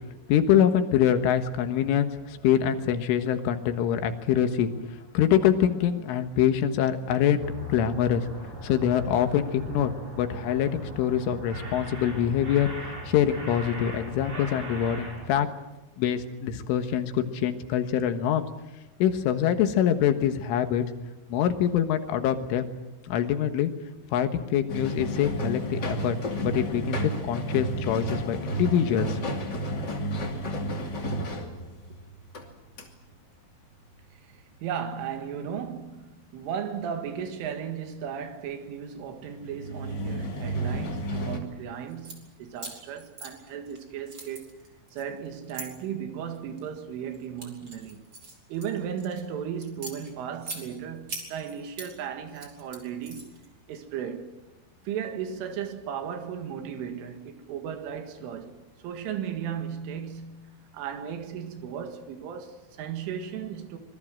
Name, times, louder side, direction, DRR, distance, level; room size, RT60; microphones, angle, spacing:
voice 1, 0.3-4.7 5.2-7.4 7.7-8.3 8.6-9.9 10.2-15.5 16.0-18.5 19.0-20.8 21.3-22.7 23.1-23.7 24.1-26.2 26.5-29.2, left 9 dB, 75° left, 3.8 m, -24 dB
sound 1, 7.4-15.3, equal, 40° right, 9.2 m, -39 dB
sound 2, 24.7-32.5 32.8-32.9 39.3-41.4, right 1 dB, 30° left, 2.2 m, -31 dB
voice 2, 34.2-44.6 44.9-48.0 48.5-54.4 54.9-63.8, right 8 dB, 75° right, 4.3 m, -36 dB
sound 3, 41.9-42.2 42.6-43.8 44.1-45.7 46.3-46.7 47.1-49.2 49.6-50.6 51.1-51.9 52.3-53.5, right 3 dB, 25° right, 4.4 m, -41 dB
26.0 x 21.5 x 7.5 m
omnidirectional pair, 5.8 m